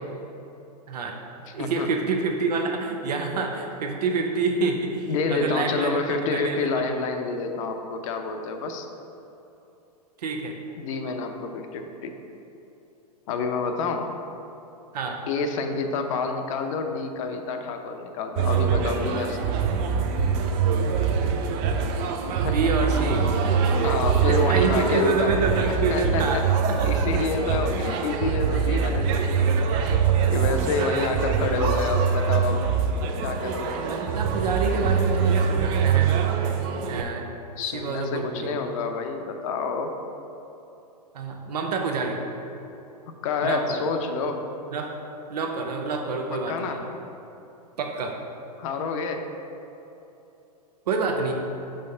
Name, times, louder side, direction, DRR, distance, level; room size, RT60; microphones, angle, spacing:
voice 1, 1.5-6.0 6.3-6.7 10.2-10.5 14.9-15.2 22.4-23.2 24.2-26.4 26.8-27.0 30.8-31.1 33.7-36.2 36.9-37.2 37.7-38.5 41.1-42.2 43.4-43.8 44.7-45.0 45.3-46.8 47.8-48.1 50.9-51.3, right 4 dB, 70° right, 2 dB, 0.7 m, -27 dB
voice 2, 5.1-8.9 10.8-12.1 13.3-14.1 15.3-19.5 22.4-22.7 23.8-25.3 25.7-26.4 26.8-29.9 30.3-32.6 33.2-33.8 37.6-39.9 43.2-44.4 46.5-46.8 48.6-49.2, left 4 dB, 50° left, 5 dB, 0.6 m, -28 dB
sound 1, 18.4-37.0, right 6 dB, 40° right, 0.5 m, -24 dB
5.4 x 3.3 x 5.5 m, 2.9 s
hypercardioid pair, 105°, 21 cm